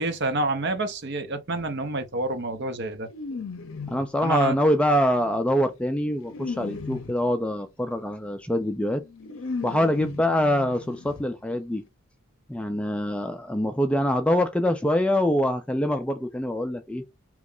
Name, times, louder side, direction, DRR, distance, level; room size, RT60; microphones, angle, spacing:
voice 1, 0.0-3.1 4.2-4.5, right 2 dB, 55° right, 0.7 m, -28 dB
sound 1, 1.5-1.7 3.0-4.2 4.9-7.3 8.6-8.7 9.0-11.3 11.5-11.6 11.9-12.0, left 4 dB, 65° left, 0.6 m, -37 dB
voice 2, 3.9-9.0 9.6-11.8 12.5-17.0, equal, 5° left, 0.3 m, -24 dB
3.0 x 2.4 x 3.6 m
head